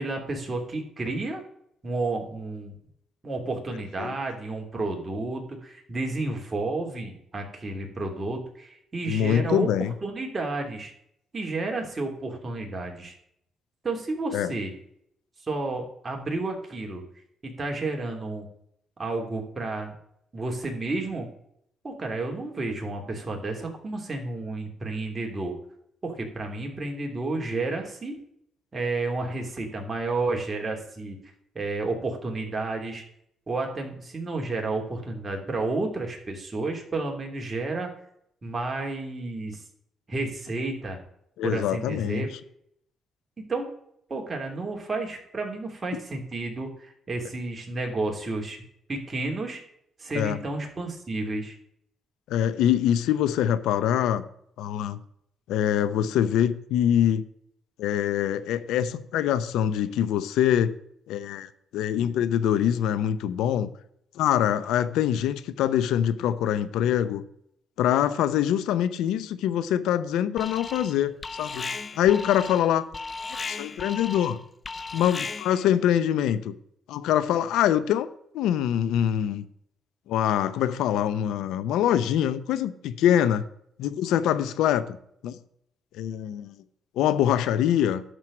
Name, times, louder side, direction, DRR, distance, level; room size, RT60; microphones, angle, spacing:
voice 1, 0.0-1.4 1.8-2.7 3.2-9.7 10.0-10.9 11.3-13.1 13.8-14.7 15.5-17.0 17.4-18.4 19.0-19.9 20.3-21.3 21.8-25.5 26.0-28.1 28.7-31.2 31.5-33.0 33.5-37.9 38.4-39.6 40.1-41.0 41.4-42.3 43.5-43.7 44.1-48.6 48.9-49.6 50.0-51.5, right 2 dB, 30° right, 3.0 m, -31 dB
voice 2, 9.1-9.9 14.3-14.5 41.4-42.3 45.9-46.0 50.1-50.4 52.3-54.3 54.6-55.0 55.5-57.2 57.8-60.7 61.1-63.7 64.2-67.2 67.8-72.8 73.3-74.4 74.9-76.5 76.9-78.1 78.3-79.4 80.1-83.5 83.8-84.9 85.2-85.4 85.9-86.5 87.0-88.0, left 10 dB, 90° left, 0.7 m, -24 dB
Alarm, 70.4-71.0 71.2-75.7, left 4 dB, 35° left, 0.6 m, -36 dB
11.5 x 4.6 x 7.5 m
cardioid pair, 90°, 0 cm